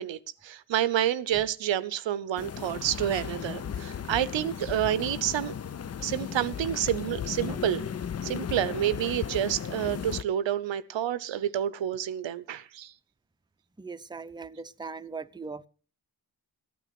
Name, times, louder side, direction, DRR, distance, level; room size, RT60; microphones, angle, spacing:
voice 1, 0.0-5.5 6.0-7.8 8.2-12.9, right 11 dB, 85° right, 0.7 m, -29 dB
sound 1, 2.4-10.2, left 8 dB, 35° left, 0.5 m, -36 dB
voice 2, 13.8-15.7, right 4 dB, 10° right, 0.7 m, -40 dB
14.5 x 9.3 x 5.8 m
cardioid pair, 60°, 44 cm